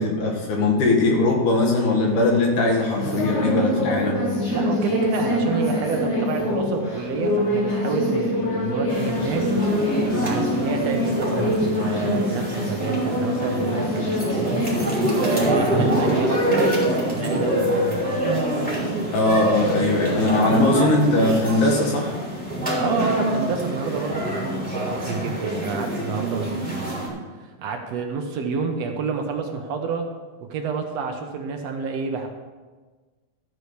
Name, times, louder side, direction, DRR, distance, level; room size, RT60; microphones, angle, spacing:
voice 1, 0.0-4.2 19.1-22.1, left 2 dB, 90° left, -1 dB, 3.3 m, -20 dB
sound 1, 2.0-20.4, left 1 dB, 30° left, 1.5 m, -26 dB
voice 2, 4.5-9.6 10.2-16.8 17.1-18.3 22.8-27.1 27.6-30.1 30.5-32.3, right 5 dB, 70° right, 4 dB, 1.8 m, -29 dB
sound 2, 8.9-27.1, right 1 dB, 5° left, 2.9 m, -26 dB
13.0 x 4.8 x 6.7 m, 1.3 s
omnidirectional pair, 3.4 m